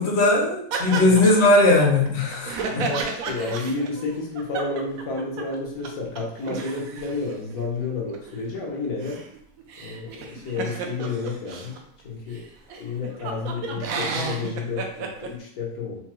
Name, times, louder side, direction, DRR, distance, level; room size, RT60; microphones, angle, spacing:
voice 1, 0.0-2.9, left 2 dB, 55° left, -1 dB, 0.9 m, -19 dB
sound 1, 0.7-5.6 5.8-5.9 6.2-11.8 12.4-12.5 12.7-15.3, right 4 dB, 80° right, 1.0 m, -33 dB
voice 2, 0.9-1.2 2.7-9.2 9.8-11.8 12.0-12.5 12.7-16.0, left 3 dB, 85° left, -2 dB, 1.4 m, -31 dB
4.4 x 2.2 x 2.9 m, 0.65 s
omnidirectional pair, 1.5 m